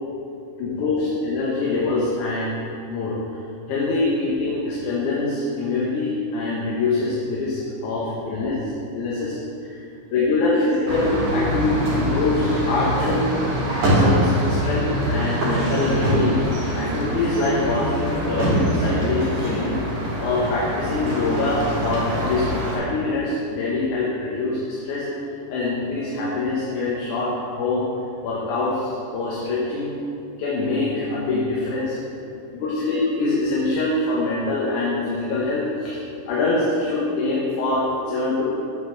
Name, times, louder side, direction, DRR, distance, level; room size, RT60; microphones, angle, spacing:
voice 1, 0.6-3.2 3.7-8.5 8.9-9.8 10.1-13.3 13.8-19.8 20.2-22.5 22.7-27.3 27.6-27.9 28.2-30.0 30.4-32.0 32.5-36.0 36.3-38.5, left 3 dB, 75° left, -6 dB, 2.5 m, -24 dB
sound 1, 10.9-22.8, right 1 dB, 85° right, 3.6 m, -24 dB
9.3 x 7.3 x 3.9 m, 2.7 s
omnidirectional pair, 3.6 m